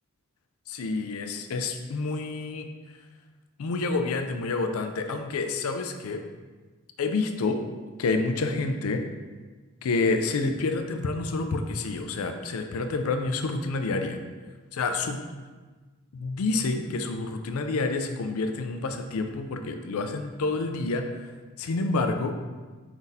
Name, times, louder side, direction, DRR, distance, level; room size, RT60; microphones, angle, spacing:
voice 1, 0.7-2.7 3.6-6.2 7.0-7.6 8.0-9.0 9.8-14.2 14.7-15.2 16.1-21.1 21.6-22.3, left 3 dB, 75° left, 6 dB, 0.4 m, -28 dB
4.7 x 3.9 x 2.7 m, 1.4 s
head